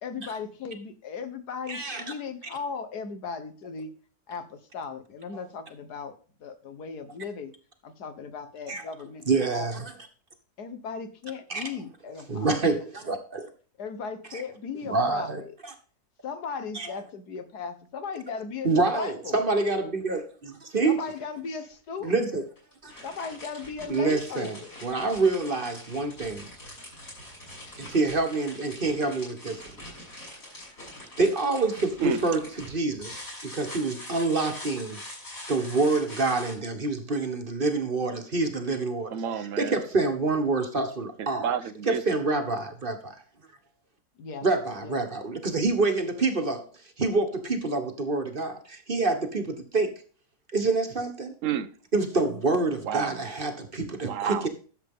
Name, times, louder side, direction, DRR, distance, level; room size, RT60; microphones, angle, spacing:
voice 1, 0.0-3.9 4.3-6.1 6.4-7.5 7.8-9.7 10.6-12.5 13.8-15.5 16.2-19.4 20.8-22.3 23.0-24.7 44.2-44.5 44.8-45.0 52.7-53.2, left 5 dB, 75° left, 1.8 m, -37 dB
voice 2, 1.7-2.0 8.7-8.8 9.3-9.9 11.5-11.7 12.3-13.5 14.3-14.4 14.8-15.7 16.7-16.9 18.6-21.0 22.0-22.4 22.8-23.0 23.9-24.6 24.8-26.5 27.8-29.8 31.2-35.0 35.5-39.2 39.6-41.5 41.9-43.2 44.4-46.7 47.0-49.9 50.5-51.3 51.9-54.5, right 3 dB, 35° right, 1.5 m, -27 dB
sound 1, 21.7-21.8 22.6-36.5, left 1 dB, 55° left, 7.0 m, -44 dB
voice 3, 39.1-39.8 41.4-42.0 51.4-51.7 52.8-53.1 54.0-54.5, right 9 dB, 60° right, 1.1 m, -29 dB
12.0 x 7.4 x 3.7 m
omnidirectional pair, 1.7 m